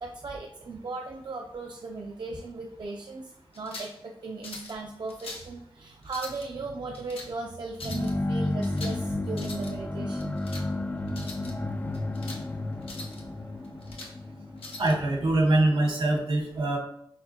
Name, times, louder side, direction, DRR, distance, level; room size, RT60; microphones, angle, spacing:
voice 1, 0.0-10.3, right 3 dB, 50° right, 1 dB, 0.4 m, -37 dB
sound 1, 3.5-4.0 4.4-4.8 5.1-5.5 6.0-6.5 6.9-7.3 7.7-8.1 8.6-9.0 9.3-9.7 10.2-10.7 11.1-11.5 11.9-12.4 12.8-13.2 13.6-14.1 14.6-15.0, left 2 dB, 90° left, 0.8 m, -42 dB
sound 2, 7.8-15.6, left 2 dB, 20° left, 0.3 m, -32 dB
voice 2, 14.8-16.8, right 2 dB, 70° right, 0 dB, 1.4 m, -23 dB
5.7 x 2.4 x 2.8 m, 0.71 s
wide cardioid pair, 105°, 9 cm